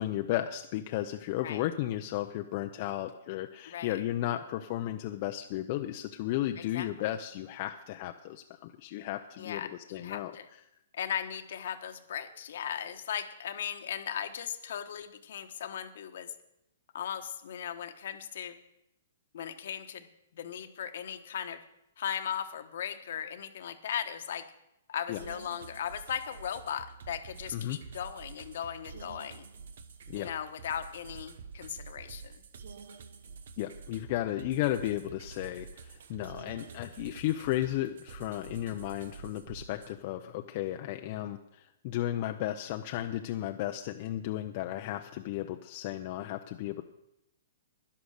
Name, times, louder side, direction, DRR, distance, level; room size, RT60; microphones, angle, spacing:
voice 1, 0.0-10.4 25.1-25.2 27.5-27.8 30.1-30.3 33.6-46.8, left 13 dB, 45° left, 5 dB, 0.7 m, -34 dB
voice 2, 3.7-4.0 6.7-6.9 9.4-10.5 10.9-16.3 16.9-18.6 19.3-20.1 20.3-21.6 22.0-24.4 24.9-29.5 30.1-32.3, left 9 dB, 65° left, 9 dB, 1.3 m, -37 dB
sound 1, 25.2-39.9, right 5 dB, 70° right, 1.1 m, -48 dB
11.5 x 10.5 x 6.6 m, 0.85 s
hypercardioid pair, 145°, 0 cm